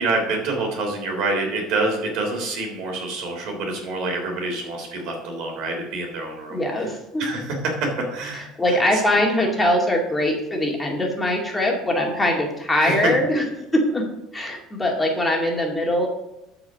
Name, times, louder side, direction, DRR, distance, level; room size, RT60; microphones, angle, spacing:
voice 1, 0.0-6.9 7.2-9.0 12.8-13.1, right 2 dB, 65° right, 2 dB, 3.5 m, -27 dB
voice 2, 6.5-7.3 8.3-13.4 13.7-14.0 14.3-16.1, left 1 dB, 10° left, -1 dB, 2.2 m, -22 dB
12.5 x 4.9 x 6.4 m, 0.90 s
cardioid pair, 130°, 0 cm